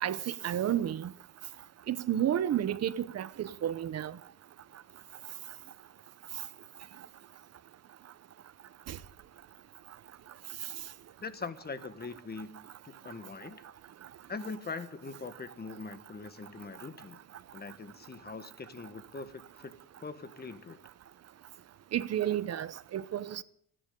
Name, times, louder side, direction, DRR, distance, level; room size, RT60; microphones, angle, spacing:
voice 1, 0.0-1.1 1.9-4.2 8.9-9.0 21.9-23.4, right 10 dB, 55° right, 0.9 m, -31 dB
voice 2, 11.2-13.7 14.3-17.2 17.5-20.8, left 4 dB, 30° left, 1.5 m, -42 dB
30.0 x 10.0 x 3.8 m
cardioid pair, 90°, 30 cm